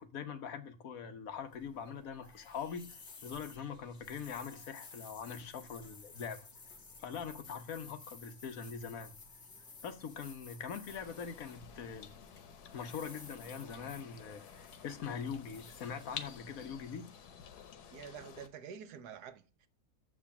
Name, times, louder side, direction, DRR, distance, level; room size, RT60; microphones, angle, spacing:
voice 1, 0.0-6.4 7.0-9.1 9.8-12.1 12.7-17.1, left 6 dB, 65° left, 1.3 m, -43 dB
sound 1, 1.3-17.5, left 3 dB, 45° left, 1.7 m, -55 dB
sound 2, 10.9-18.5, left 7 dB, 90° left, 1.4 m, -51 dB
voice 2, 17.9-19.7, right 7 dB, 90° right, 1.4 m, -48 dB
7.1 x 5.0 x 7.1 m
omnidirectional pair, 1.6 m